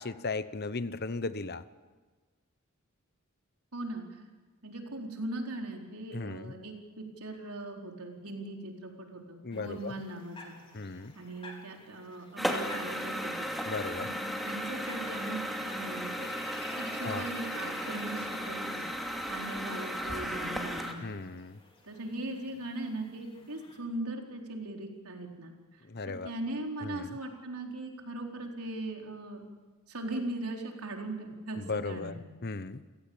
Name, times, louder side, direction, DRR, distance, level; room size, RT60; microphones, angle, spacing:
voice 1, 0.0-1.6 6.1-6.5 9.4-10.0 10.7-11.1 13.6-14.1 17.0-17.3 21.0-21.6 25.9-26.3 26.8-27.2 31.5-32.8, left 3 dB, 45° left, 13 dB, 1.0 m, -36 dB
voice 2, 3.7-4.1 4.6-10.5 11.1-13.5 13.9-16.3 16.8-18.9 19.3-21.1 21.9-25.5 26.1-29.4 29.9-32.3, right 2 dB, 80° right, 1 dB, 4.4 m, -39 dB
sound 1, 9.5-23.8, left 2 dB, 25° left, 4.0 m, -52 dB
sound 2, 12.4-20.9, equal, ahead, 2.8 m, -35 dB
30.0 x 17.5 x 8.8 m, 1.3 s
head